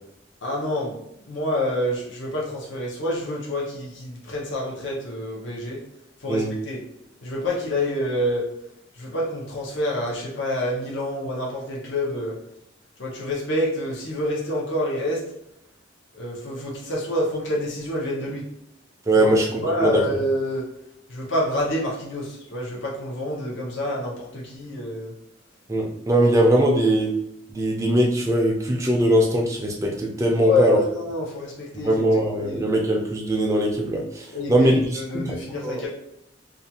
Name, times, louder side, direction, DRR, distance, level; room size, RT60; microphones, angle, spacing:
voice 1, 0.4-0.9 1.3-5.8 6.2-6.8 7.2-8.5 8.9-12.4 13.0-15.2 16.1-18.4 19.2-19.3 19.6-20.7 21.1-25.1 30.4-31.9 32.4-32.7 34.3-35.9, left 1 dB, 75° left, -3 dB, 0.7 m, -27 dB
voice 2, 19.1-20.1 25.7-27.1 27.5-30.8 31.7-34.8 35.1-35.4 35.6-35.8, right 1 dB, 15° right, 0 dB, 0.4 m, -21 dB
2.5 x 2.3 x 2.8 m, 0.80 s
head